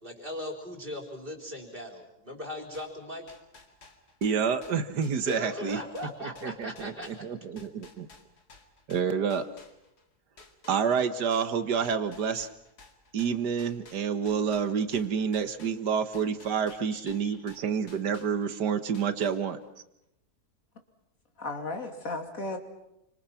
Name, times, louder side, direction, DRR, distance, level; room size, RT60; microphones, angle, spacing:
voice 1, 0.0-3.2 5.3-7.2, left 1 dB, 30° right, 4 dB, 4.4 m, -38 dB
sound 1, 2.7-10.1 10.4-18.6 18.9-19.8, left 3 dB, 75° left, 2.8 m, -54 dB
voice 2, 4.2-5.8 6.2-8.1 8.9-9.5 10.7-12.5 13.1-19.6, right 6 dB, 85° right, 11 dB, 2.0 m, -28 dB
voice 3, 16.9-17.4 21.4-22.6, left 2 dB, 55° left, 5 dB, 3.1 m, -36 dB
29.5 x 25.5 x 5.9 m, 0.84 s
omnidirectional pair, 1.7 m